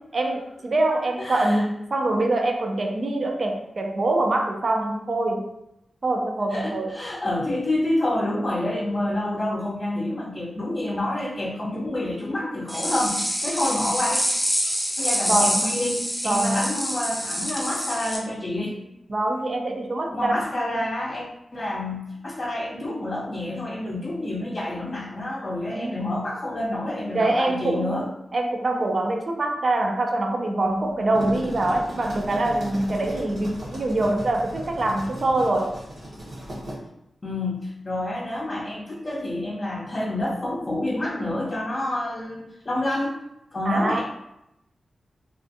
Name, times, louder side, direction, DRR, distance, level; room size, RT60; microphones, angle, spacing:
voice 1, 0.1-5.5 6.0-6.9 15.3-15.7 16.2-16.7 19.1-20.3 20.6-20.9 25.8-26.0 27.1-35.8 43.7-44.0, right 2 dB, 50° right, 4 dB, 0.4 m, -24 dB
voice 2, 1.2-1.6 6.5-14.2 15.0-18.8 20.1-28.1 37.2-43.2 43.5-44.0, left 1 dB, 40° left, -6 dB, 0.5 m, -28 dB
sound 1, 12.7-18.2, equal, ahead, 0.6 m, -26 dB
sound 2, 30.9-36.7, right 1 dB, 80° right, 1.0 m, -36 dB
2.4 x 2.4 x 2.6 m, 0.86 s
wide cardioid pair, 80°, 0 cm